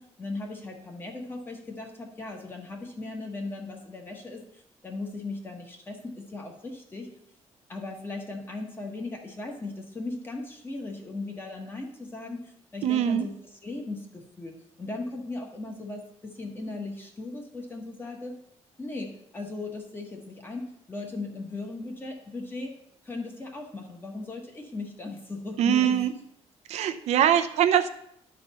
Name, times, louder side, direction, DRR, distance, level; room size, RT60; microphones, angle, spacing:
voice 1, 0.0-7.1 7.7-13.3 13.6-18.4 18.8-22.8 23.0-26.1 27.2-27.4, left 2 dB, 20° left, 2 dB, 1.3 m, -37 dB
voice 2, 12.8-13.3 25.6-26.1 26.7-27.9, right 10 dB, 70° right, 8 dB, 0.6 m, -22 dB
11.0 x 4.1 x 5.6 m, 0.73 s
cardioid pair, 165°, 12 cm